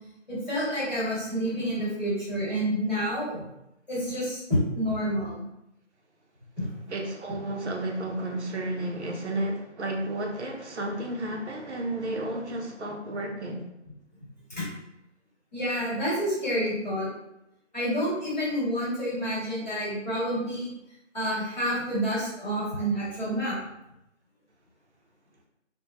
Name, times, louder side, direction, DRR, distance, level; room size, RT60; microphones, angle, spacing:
voice 1, 0.3-3.4 3.9-5.3 6.6-6.7 14.5-14.6 15.5-17.1 17.7-20.7 21.1-23.6, equal, 35° left, -9 dB, 1.2 m, -28 dB
voice 2, 6.9-13.7, right 1 dB, 65° right, 1 dB, 0.5 m, -32 dB
3.0 x 2.1 x 2.3 m, 0.84 s
figure-of-eight pair, 175°, 37 cm